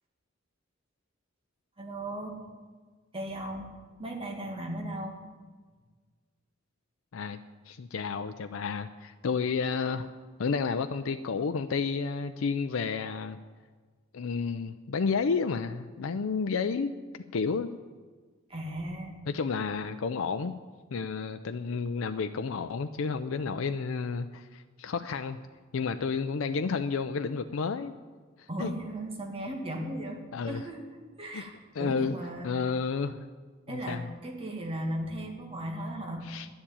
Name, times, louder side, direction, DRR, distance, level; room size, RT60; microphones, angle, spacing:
voice 1, 1.8-2.4 3.1-3.7 4.0-5.2 18.5-19.2 28.5-30.2 30.5-30.8 31.2-31.5 31.8-32.5 33.7-36.2, right 1 dB, 30° right, 1 dB, 2.0 m, -36 dB
voice 2, 7.7-10.1 10.4-13.4 14.1-16.9 17.3-17.7 19.3-20.5 20.9-25.4 25.7-28.0 28.4-28.7 30.3-30.6 31.3-31.4 31.7-32.1 32.4-33.2 33.7-34.1 36.2-36.5, left 5 dB, 85° left, 8 dB, 0.5 m, -31 dB
11.5 x 7.2 x 8.8 m, 1.5 s
head